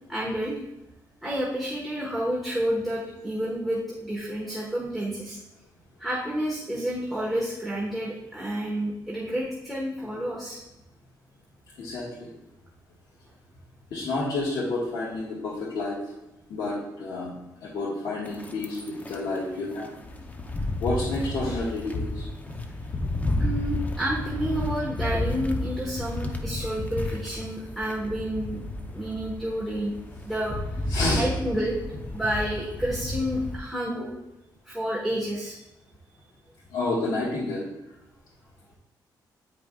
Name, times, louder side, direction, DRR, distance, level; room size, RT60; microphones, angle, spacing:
voice 1, 0.1-0.6 1.2-5.4 6.0-10.6 23.4-28.6 28.9-29.9 30.2-30.6 31.1-31.8 32.1-34.0 34.6-35.6, equal, ahead, -4 dB, 1.3 m, -30 dB
voice 2, 11.8-12.3 13.9-16.0 16.5-17.4 17.6-19.9 20.8-22.2 30.9-31.2 33.9-34.1 36.7-37.7, left 2 dB, 75° left, -7 dB, 1.5 m, -29 dB
sound 1, 18.3-33.6, left 1 dB, 20° left, 0.7 m, -32 dB
9.2 x 5.1 x 2.4 m, 0.92 s
cardioid pair, 105°, 8 cm